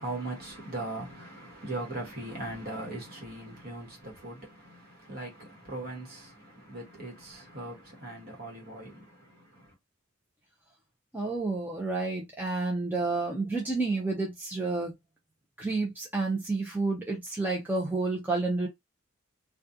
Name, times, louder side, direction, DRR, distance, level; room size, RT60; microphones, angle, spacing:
voice 1, 0.0-9.7, right 2 dB, 45° right, 1.1 m, -40 dB
voice 2, 11.1-14.9 15.6-18.7, right 3 dB, 10° right, 0.5 m, -30 dB
2.4 x 2.2 x 2.7 m
head